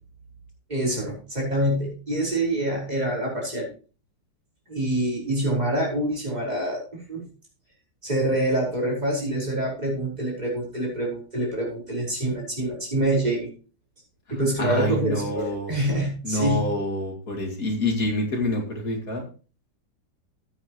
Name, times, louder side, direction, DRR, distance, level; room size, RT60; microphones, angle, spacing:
voice 1, 0.7-3.7 4.7-7.2 8.0-13.5 14.3-16.7, right 1 dB, 20° right, -4 dB, 5.3 m, -26 dB
voice 2, 14.6-15.7 16.2-19.2, left 1 dB, 50° left, 0 dB, 2.9 m, -27 dB
15.0 x 8.8 x 3.1 m, 0.37 s
omnidirectional pair, 2.0 m